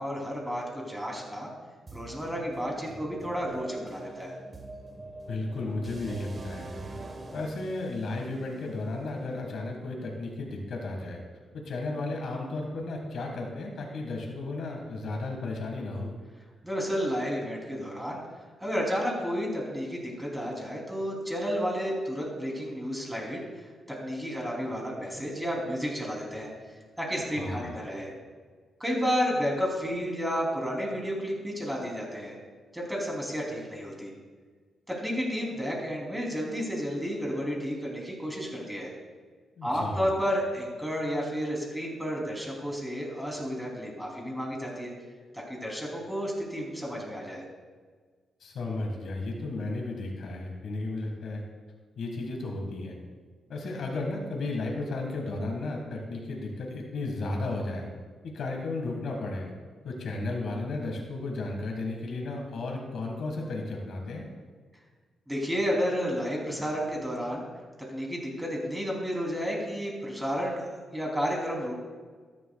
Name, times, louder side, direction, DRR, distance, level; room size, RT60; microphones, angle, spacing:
voice 1, 0.0-1.5 1.9-4.3 16.6-18.2 18.6-23.4 23.9-26.5 27.0-28.1 28.8-32.3 32.7-34.1 34.9-38.9 39.6-44.9 45.3-47.4 65.3-67.5 67.9-71.7, equal, 5° right, -2 dB, 3.0 m, -31 dB
sound 1, 1.9-9.7, right 2 dB, 35° right, 1.2 m, -44 dB
voice 2, 5.3-6.7 7.3-11.2 11.5-16.1 27.4-27.8 39.6-40.0 48.4-51.4 51.9-52.9 53.5-57.9 58.2-59.5 59.8-64.2, left 2 dB, 70° left, 1 dB, 1.6 m, -34 dB
13.0 x 10.5 x 2.3 m, 1.5 s
cardioid pair, 85°, 0 cm